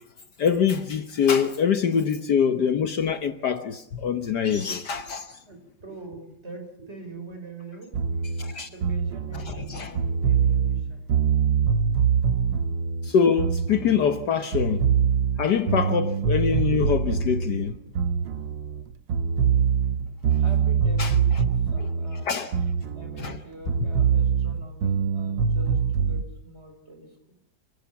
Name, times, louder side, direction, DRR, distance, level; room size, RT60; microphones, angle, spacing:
voice 1, 0.4-5.3 8.4-8.7 9.5-9.9 13.0-14.9 15.4-17.8 21.0-21.1 21.8-21.9 22.2-22.5 23.2-23.4, left 7 dB, 60° left, 1.5 m, -24 dB
voice 2, 5.4-8.2 8.6-11.6 18.2-18.9 20.4-27.2, right 2 dB, 30° right, 6.0 m, -44 dB
sound 1, 7.9-14.2 14.5-18.8 19.1-23.4 23.7-26.2, right 6 dB, 70° right, 1.7 m, -24 dB
28.0 x 17.5 x 7.1 m
omnidirectional pair, 2.1 m